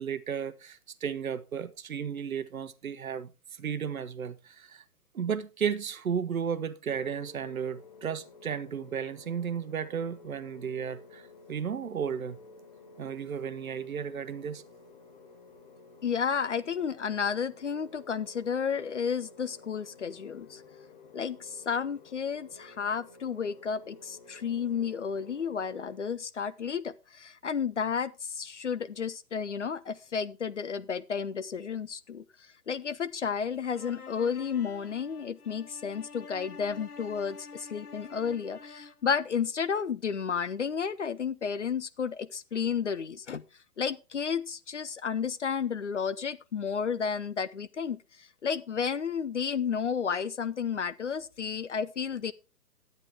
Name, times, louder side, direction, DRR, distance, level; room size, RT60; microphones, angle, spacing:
voice 1, 0.0-3.3 3.6-4.8 5.1-12.4 13.0-14.6, right 7 dB, 60° right, 1.0 m, -34 dB
sound 1, 6.9-26.0, left 3 dB, 30° left, 0.9 m, -53 dB
voice 2, 16.0-20.6 21.1-32.2 32.7-43.4 43.8-52.3, left 6 dB, 50° left, 0.5 m, -32 dB
sound 2, 33.7-39.1, left 5 dB, 65° left, 1.2 m, -48 dB
11.0 x 9.1 x 3.4 m
figure-of-eight pair, 135°, 48 cm